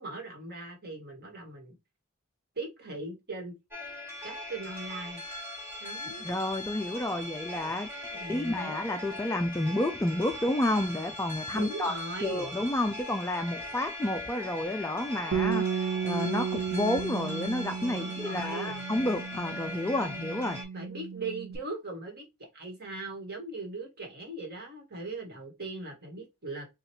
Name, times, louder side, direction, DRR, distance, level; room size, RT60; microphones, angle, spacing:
voice 1, 0.0-1.7 2.5-3.5 4.2-5.2 5.8-6.3 8.1-8.7 11.5-12.5 17.9-18.8 20.7-26.7, right 2 dB, 45° right, 1.6 m, -39 dB
sound 1, 3.7-20.6, left 1 dB, 10° right, 2.0 m, -40 dB
voice 2, 6.2-7.9 8.3-11.9 12.2-20.6, left 1 dB, 10° left, 0.3 m, -30 dB
Bass guitar, 15.3-21.6, right 7 dB, 65° right, 1.2 m, -34 dB
5.1 x 2.4 x 2.9 m
head